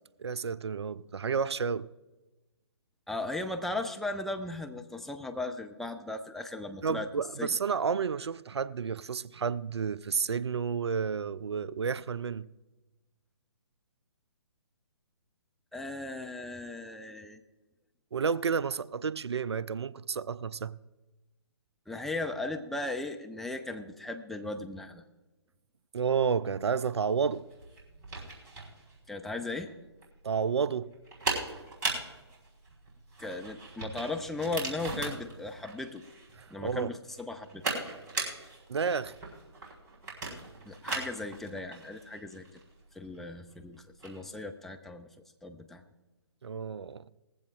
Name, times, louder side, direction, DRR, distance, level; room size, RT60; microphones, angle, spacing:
voice 1, 0.2-1.9 6.8-12.5 18.1-20.8 25.9-27.5 30.2-30.9 36.3-36.9 38.7-39.2 46.4-47.0, right 6 dB, 65° right, 0.5 m, -31 dB
voice 2, 3.1-7.1 7.4-7.5 15.7-17.4 21.9-25.0 29.1-29.7 33.2-36.0 36.5-37.6 40.7-42.5 42.9-45.1 45.4-45.8, left 2 dB, ahead, 0.4 m, -37 dB
sound 1, 26.9-44.3, right 3 dB, 40° right, 4.5 m, -39 dB
19.5 x 15.0 x 2.4 m
figure-of-eight pair, 135°, 15 cm